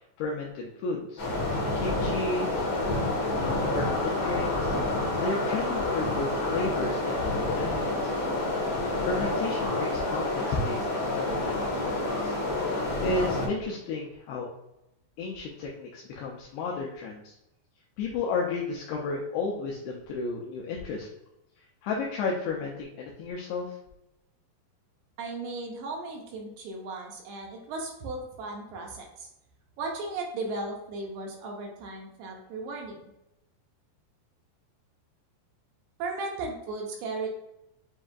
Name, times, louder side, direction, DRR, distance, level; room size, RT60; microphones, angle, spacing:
voice 1, 0.2-1.3 1.8-2.5 3.4-4.8 5.2-8.1 9.0-12.4 13.0-14.5 15.2-17.3 18.0-21.1 21.8-23.8, left 3 dB, 80° left, -2 dB, 2.4 m, -33 dB
sound 1, 1.2-13.5, left 2 dB, 60° left, 1.2 m, -28 dB
voice 2, 25.2-29.3 29.8-33.0 36.0-37.3, right 3 dB, 80° right, 1 dB, 2.5 m, -36 dB
7.3 x 2.6 x 2.3 m, 0.87 s
omnidirectional pair, 4.9 m